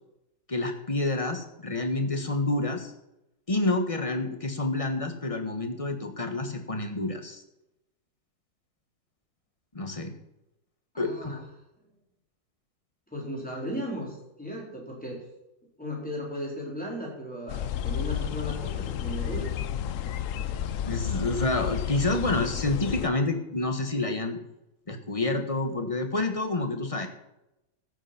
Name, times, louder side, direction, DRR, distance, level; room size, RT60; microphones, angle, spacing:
voice 1, 0.5-2.9 3.5-7.4 9.7-10.1 11.0-11.4 20.8-24.4 24.9-27.1, left 2 dB, 20° left, 6 dB, 1.2 m, -28 dB
voice 2, 10.9-11.4 13.1-15.2 15.8-19.5, equal, 5° left, -3 dB, 4.1 m, -36 dB
sound 1, 17.5-23.1, left 9 dB, 65° left, 0.8 m, -31 dB
13.5 x 7.8 x 5.9 m, 0.89 s
omnidirectional pair, 1.9 m